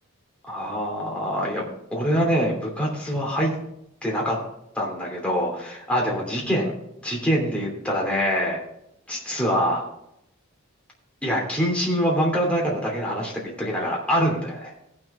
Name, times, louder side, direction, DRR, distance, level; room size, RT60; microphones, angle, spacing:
voice 1, 0.5-3.6 4.0-4.4 4.7-6.7 7.0-8.6 9.1-9.9 11.2-14.7, equal, 5° left, -3 dB, 3.0 m, -24 dB
17.5 x 6.2 x 4.3 m, 0.79 s
head